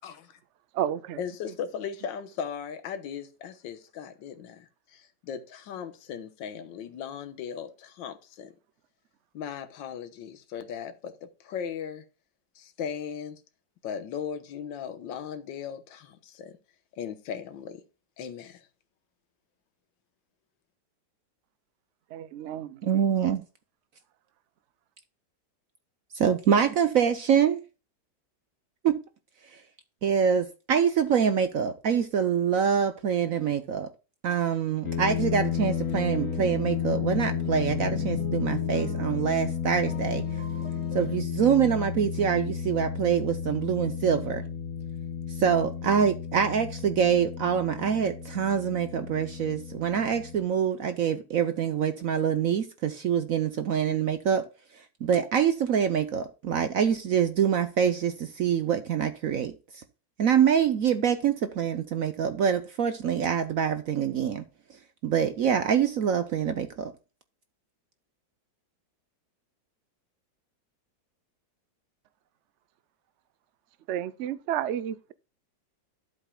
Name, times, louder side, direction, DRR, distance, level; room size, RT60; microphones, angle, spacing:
voice 1, 0.0-0.4 1.2-8.5 9.3-12.0 12.6-13.4 13.8-16.5 17.0-17.8 18.2-18.7, left 7 dB, 75° left, 1.7 m, -37 dB
voice 2, 0.8-1.2 22.1-22.7 73.9-75.1, right 10 dB, 90° right, 0.6 m, -31 dB
voice 3, 22.8-23.4 26.1-27.6 28.8-29.0 30.0-33.9 34.2-40.2 40.9-44.4 45.4-54.4 55.0-59.8 60.2-64.4 65.0-66.9, right 8 dB, 60° right, 0.9 m, -25 dB
sound 1, 34.8-50.4, left 8 dB, 55° left, 1.5 m, -32 dB
sound 2, 36.1-39.4 39.7-41.2, equal, 5° right, 2.5 m, -40 dB
12.0 x 7.9 x 2.3 m
omnidirectional pair, 2.1 m